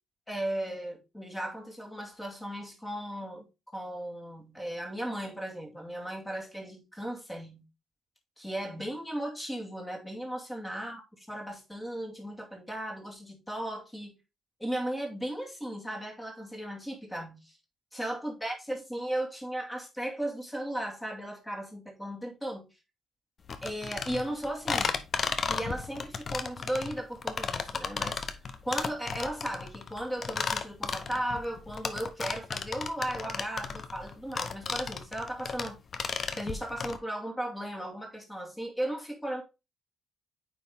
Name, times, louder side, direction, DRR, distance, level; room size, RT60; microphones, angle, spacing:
voice 1, 0.3-3.5 3.7-7.7 8.4-11.0 11.3-14.2 14.6-17.6 17.9-22.7 23.6-25.0 25.5-28.2 28.6-35.8 36.3-39.4, right 1 dB, 10° left, 2.2 m, -36 dB
sound 1, 23.5-37.0, left 5 dB, 45° left, 0.9 m, -34 dB
9.4 x 3.5 x 3.6 m
cardioid pair, 90°, 0 cm